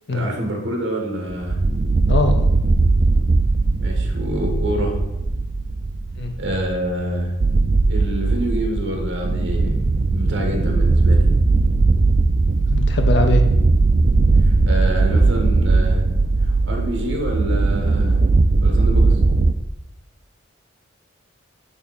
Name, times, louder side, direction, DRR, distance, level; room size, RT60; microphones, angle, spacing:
voice 1, 0.1-1.6 3.8-5.0 6.4-7.3 7.8-9.8 10.1-11.3 14.4-16.0 16.4-18.2 18.6-19.2, equal, 60° right, 1 dB, 1.4 m, -27 dB
sound 1, 1.3-19.5, right 3 dB, 40° right, 0.3 m, -18 dB
voice 2, 2.1-2.5 6.2-6.3 12.7-13.4, left 2 dB, 55° left, 5 dB, 0.6 m, -21 dB
8.4 x 3.4 x 4.1 m, 0.92 s
head